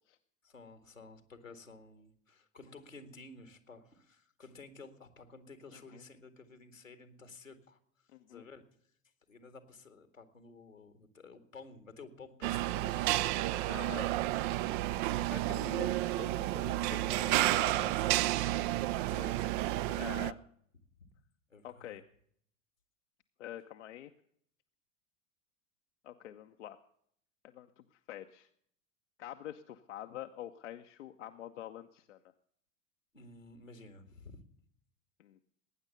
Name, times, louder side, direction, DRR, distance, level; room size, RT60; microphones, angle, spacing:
voice 1, 0.4-8.6 9.3-13.6 13.9-14.1 14.4-15.0 17.1-20.4 21.5-22.0 33.1-34.4, left 3 dB, 85° left, 9 dB, 1.9 m, -52 dB
voice 2, 5.7-6.0 8.1-8.4 13.7-14.1 15.3-17.7 20.0-20.4 21.6-22.0 23.4-24.1 26.0-26.8 27.4-28.5 29.2-32.2 35.2-35.4, left 11 dB, 65° left, 6 dB, 0.9 m, -46 dB
sound 1, 12.4-20.3, right 16 dB, 40° right, 0.5 m, -31 dB
19.0 x 9.8 x 6.9 m, 0.66 s
figure-of-eight pair, 80°, 38 cm